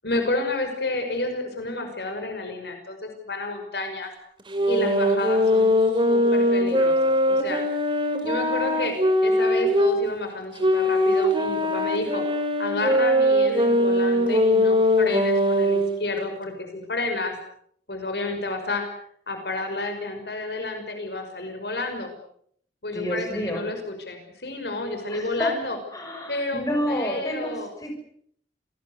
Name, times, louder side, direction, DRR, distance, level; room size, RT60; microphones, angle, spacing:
voice 1, 0.0-4.1 4.7-7.6 8.2-9.0 9.2-12.2 12.6-17.4 17.9-18.8 19.3-22.1 22.8-23.8 24.1-25.8 26.3-27.7, left 2 dB, 60° left, 6 dB, 5.8 m, -30 dB
sound 1, 4.5-10.0 10.6-15.9, equal, 25° right, 4.1 m, -21 dB
voice 2, 22.9-23.6 25.1-25.6 25.9-28.0, equal, 20° left, 3 dB, 7.2 m, -29 dB
28.5 x 20.5 x 8.2 m, 0.66 s
head